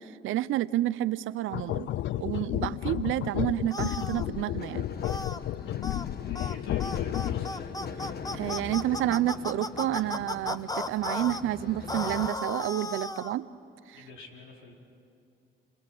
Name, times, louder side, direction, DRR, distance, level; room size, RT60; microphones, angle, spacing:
voice 1, 0.0-1.9 2.2-4.9 8.3-13.5 13.9-14.0, right 14 dB, 85° right, 16 dB, 0.7 m, -29 dB
sound 1, 1.5-7.7, left 13 dB, 70° left, 0.5 m, -32 dB
sound 2, 2.6-12.3, left 6 dB, 50° left, 1.3 m, -42 dB
sound 3, 3.7-4.3 5.0-5.4 5.8-6.1 6.4-6.6 6.8-11.4 11.9-13.4, left 2 dB, 20° left, 0.9 m, -35 dB
voice 2, 6.1-7.8 8.6-9.1 13.9-14.7, left 2 dB, 90° left, 0 dB, 4.5 m, -49 dB
29.0 x 27.0 x 6.1 m, 2.7 s
cardioid pair, 90°, 20 cm